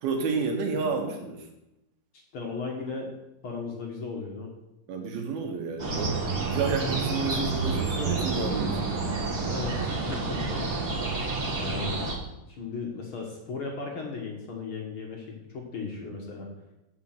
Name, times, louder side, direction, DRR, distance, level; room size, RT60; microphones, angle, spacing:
voice 1, 0.0-1.5 4.9-6.2 6.5-9.1, right 4 dB, 85° right, 3 dB, 3.3 m, -30 dB
voice 2, 2.3-3.1 3.4-4.5 9.4-10.7 11.5-12.0 12.5-16.5, left 4 dB, 60° left, 0 dB, 1.5 m, -36 dB
sound 1, 5.8-12.1, right 3 dB, 35° right, 1.6 m, -29 dB
8.4 x 5.9 x 7.7 m, 0.92 s
omnidirectional pair, 4.2 m